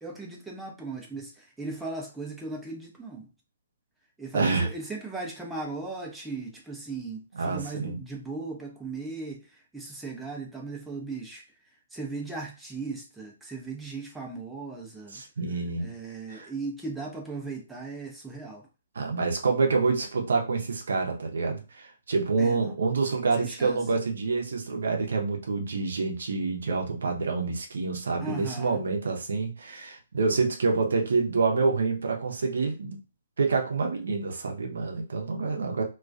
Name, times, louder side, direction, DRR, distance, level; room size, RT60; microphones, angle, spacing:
voice 1, 0.0-3.3 4.2-9.4 9.7-11.4 11.9-15.2 15.8-18.6 22.4-22.6 23.4-23.8 28.2-28.8, right 3 dB, 5° right, -1 dB, 0.5 m, -37 dB
voice 2, 4.3-4.7 7.3-8.0 15.1-15.9 16.3-16.5 18.9-33.0 33.4-35.8, right 4 dB, 65° right, 2 dB, 0.6 m, -27 dB
2.2 x 2.2 x 2.4 m, 0.31 s
figure-of-eight pair, 125°, 0 cm